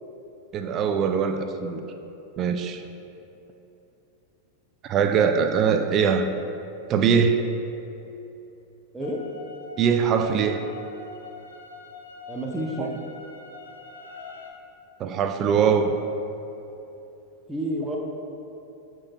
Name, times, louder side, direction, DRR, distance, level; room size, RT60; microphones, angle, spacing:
voice 1, 0.5-1.8 2.4-2.8 4.8-6.3 6.9-7.4 9.8-10.6 12.8-12.9 15.0-15.9, right 6 dB, 30° right, 7 dB, 0.4 m, -22 dB
sound 1, 9.0-14.5, left 4 dB, 65° left, 0.8 m, -43 dB
voice 2, 12.3-12.9 17.5-18.0, equal, 10° right, -2 dB, 0.9 m, -29 dB
13.0 x 4.5 x 2.3 m, 2.9 s
figure-of-eight pair, 90°, 0 cm